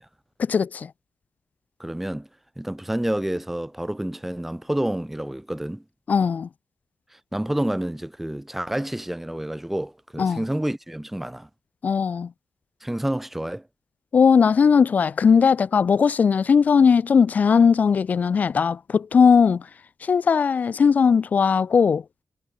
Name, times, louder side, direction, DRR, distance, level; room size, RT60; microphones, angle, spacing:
voice 1, 0.5-0.9 6.1-6.5 10.2-10.4 11.8-12.3 14.1-19.6 20.0-22.0, left 6 dB, 55° left, 0.8 m, -18 dB
voice 2, 1.8-2.3 2.6-5.8 7.1-11.5 12.8-13.6, right 1 dB, 5° right, 3.5 m, -29 dB
wide cardioid pair, 130°, 3 cm